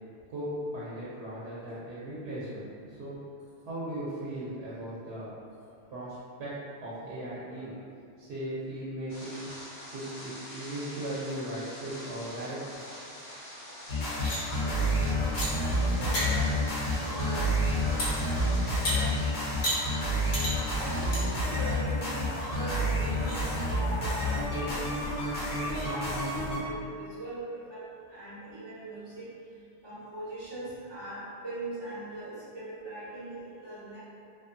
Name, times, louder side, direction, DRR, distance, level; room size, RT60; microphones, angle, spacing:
voice 1, 0.3-3.2 3.6-5.3 5.9-7.8 8.2-9.4 9.9-12.6, right 1 dB, 90° right, -9 dB, 0.8 m, -37 dB
sound 1, 9.1-21.4, equal, 35° left, 0.7 m, -45 dB
sound 2, 13.9-26.6, equal, 70° left, 1.0 m, -29 dB
sound 3, 14.0-14.4 15.4-15.5 15.9-16.3 18.0-18.1 18.8-19.0 19.6-19.8 20.3-20.5 21.1-21.2 21.7-21.8 22.4-22.5 23.0-23.4 25.0-25.1 25.6-25.9, equal, 90° left, 1.0 m, -32 dB
voice 2, 15.9-16.3 16.9-17.5 20.7-24.9 25.4-29.3 29.8-34.0, right 1 dB, 25° right, -11 dB, 1.0 m, -41 dB
2.5 x 2.5 x 2.5 m, 2.4 s
omnidirectional pair, 1.0 m